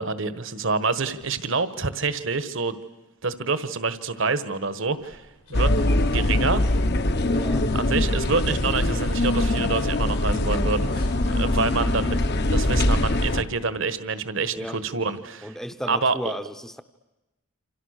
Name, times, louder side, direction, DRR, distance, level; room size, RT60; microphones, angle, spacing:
voice 1, 0.0-2.7 3.2-5.2 5.5-5.7 6.1-6.6 7.7-12.2 12.5-15.6 15.9-16.3, right 4 dB, 55° right, 13 dB, 1.4 m, -27 dB
sound 1, 5.0-6.5 6.7-7.1 7.4-7.6 8.0-13.1, equal, 80° left, 4.8 m, -33 dB
sound 2, 5.5-13.4, left 1 dB, 45° left, 1.1 m, -23 dB
voice 2, 7.3-7.7 14.5-14.8 15.4-16.8, equal, ahead, 10 dB, 0.9 m, -34 dB
28.0 x 27.0 x 6.6 m, 1.0 s
head